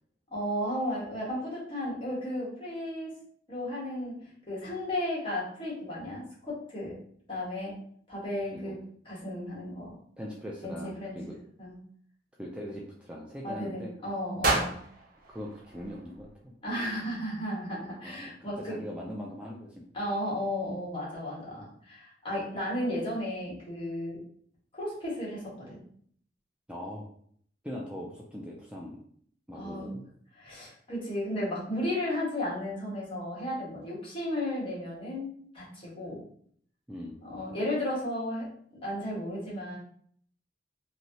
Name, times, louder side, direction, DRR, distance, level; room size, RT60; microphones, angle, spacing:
voice 1, 0.3-3.1 3.5-4.1 4.5-6.9 7.3-7.7 8.1-8.8 9.0-9.9 10.6-11.1 11.6-11.8 13.4-14.8 16.6-18.7 19.9-24.2 24.7-25.8 29.5-29.9 30.4-35.3 35.5-36.2 37.2-38.4 38.8-39.8, left 1 dB, 30° left, -6 dB, 1.3 m, -34 dB
voice 2, 10.2-11.4 12.4-13.9 15.3-16.5 18.0-19.9 26.7-27.1 27.6-29.0 29.5-30.0 36.9-37.2, equal, 5° right, -3 dB, 0.3 m, -41 dB
sound 1, 14.4-16.6, right 3 dB, 55° right, 0.6 m, -32 dB
3.1 x 2.6 x 2.7 m, 0.62 s
head